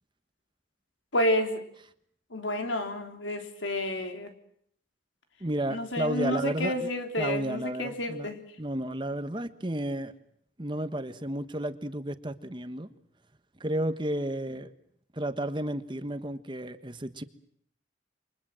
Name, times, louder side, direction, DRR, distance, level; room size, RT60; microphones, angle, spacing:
voice 1, 1.1-1.6 2.3-4.3 5.7-8.4, left 1 dB, 90° left, 6 dB, 3.5 m, -30 dB
voice 2, 5.4-6.9 7.2-8.3 8.6-10.1 10.6-12.9 13.6-14.7 15.1-17.2, right 1 dB, 25° right, 10 dB, 1.3 m, -32 dB
28.5 x 24.0 x 7.7 m, 0.70 s
head